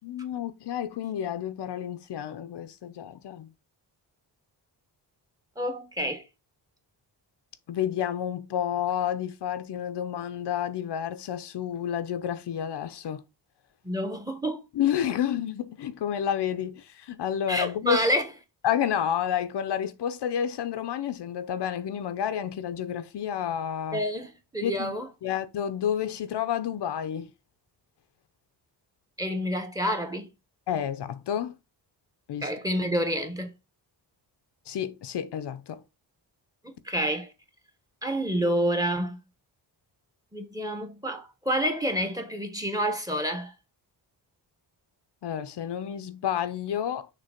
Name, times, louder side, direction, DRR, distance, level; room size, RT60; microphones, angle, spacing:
voice 1, 0.0-3.5 7.7-13.2 14.7-18.0 18.6-24.0 24.6-25.0 25.2-27.3 30.7-31.6 32.3-32.5 34.7-35.8 45.2-47.1, left 9 dB, 75° left, 0.8 m, -30 dB
voice 2, 5.6-6.2 13.8-14.6 17.5-18.3 23.9-25.1 29.2-30.3 32.4-33.5 36.6-37.3 38.0-39.2 40.3-43.5, equal, 10° right, 1.2 m, -28 dB
6.7 x 3.0 x 5.8 m
wide cardioid pair, 155°, 42 cm